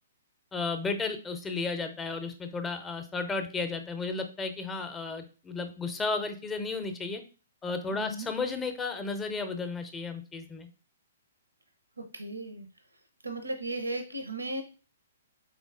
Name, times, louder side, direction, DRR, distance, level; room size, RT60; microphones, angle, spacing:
voice 1, 0.5-7.2 7.6-10.7, left 4 dB, 15° left, 7 dB, 0.6 m, -33 dB
voice 2, 7.9-8.3 12.0-12.7 13.2-14.6, right 2 dB, 90° right, 6 dB, 0.6 m, -36 dB
4.0 x 3.6 x 2.5 m, 0.35 s
figure-of-eight pair, 120°, 0 cm